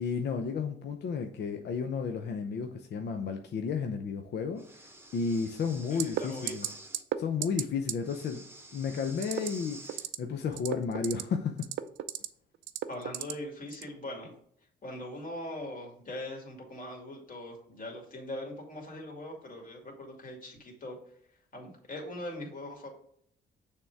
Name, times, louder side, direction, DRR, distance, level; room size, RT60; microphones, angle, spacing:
voice 1, 0.0-4.6 5.1-6.7 7.2-8.4 8.7-11.7, left 5 dB, 60° left, 5 dB, 0.7 m, -32 dB
Breathing, 4.6-7.0 8.0-10.1, right 2 dB, 10° right, 1.0 m, -49 dB
voice 2, 5.9-6.5 12.9-14.3 14.8-21.0 21.5-22.9, left 1 dB, 40° left, 0 dB, 2.5 m, -41 dB
sound 1, 6.0-6.2 6.5-6.7 6.9-7.2 7.4-7.6 7.9-8.0 9.2-9.5 9.9-10.2 10.5-11.2 11.6-12.3 12.7-13.3 13.7-13.9, right 13 dB, 75° right, 0.5 m, -32 dB
6.6 x 3.7 x 4.6 m, 0.66 s
cardioid pair, 90°, 20 cm